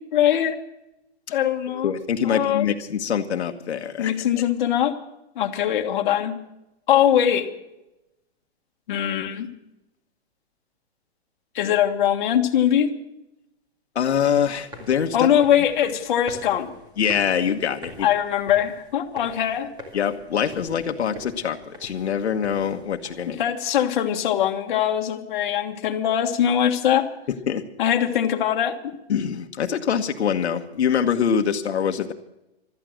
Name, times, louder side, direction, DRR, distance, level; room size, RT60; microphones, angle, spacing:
voice 1, 0.1-0.5 1.3-1.9 2.2-2.6 4.0-4.9 5.3-6.4 6.9-7.5 8.9-9.5 11.5-12.9 15.1-16.7 18.0-19.7 23.3-27.1 27.8-28.8, left 10 dB, 50° left, 3 dB, 1.6 m, -21 dB
voice 2, 1.7-4.4 13.9-15.3 17.0-18.1 19.9-23.4 27.5-27.6 29.1-32.1, left 8 dB, 85° left, 5 dB, 1.4 m, -24 dB
sound 1, 14.5-23.3, equal, 15° right, 2.3 m, -44 dB
15.5 x 13.0 x 6.4 m, 0.90 s
hypercardioid pair, 165°, 32 cm